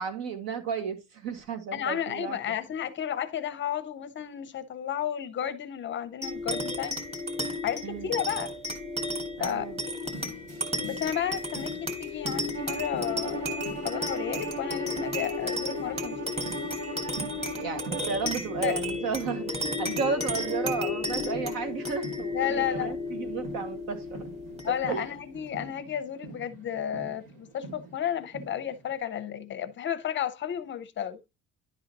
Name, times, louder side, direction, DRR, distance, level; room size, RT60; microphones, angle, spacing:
voice 1, 0.0-2.4 7.8-8.1 9.4-9.8 17.5-24.2 24.9-25.1, right 5 dB, 70° right, 1.9 m, -33 dB
voice 2, 1.7-7.0 7.6-8.5 9.4-9.7 10.2-10.4 10.8-16.4 18.2-18.3 18.6-18.8 22.3-23.0 24.6-31.2, left 9 dB, 35° left, 0.6 m, -32 dB
sound 1, 6.2-25.1, left 2 dB, 15° right, 2.0 m, -33 dB
sound 2, 10.0-29.0, right 3 dB, 85° right, 3.5 m, -46 dB
Bowed string instrument, 12.5-18.2, right 7 dB, 50° right, 2.1 m, -39 dB
11.0 x 4.0 x 4.0 m
cardioid pair, 165°, 36 cm